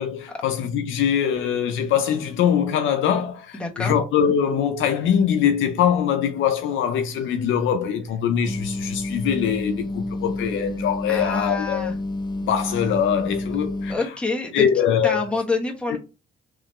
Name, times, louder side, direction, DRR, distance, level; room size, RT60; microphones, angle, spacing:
voice 1, 0.0-11.9 12.4-13.9 14.5-15.2 15.9-16.0, left 8 dB, 80° left, 0.5 m, -22 dB
voice 2, 3.5-3.9 11.1-12.0 13.9-14.6 15.0-16.0, left 3 dB, 5° left, 1.1 m, -27 dB
sound 1, 8.5-14.0, left 2 dB, 20° left, 0.4 m, -29 dB
3.8 x 3.2 x 3.0 m
cardioid pair, 90°, 20 cm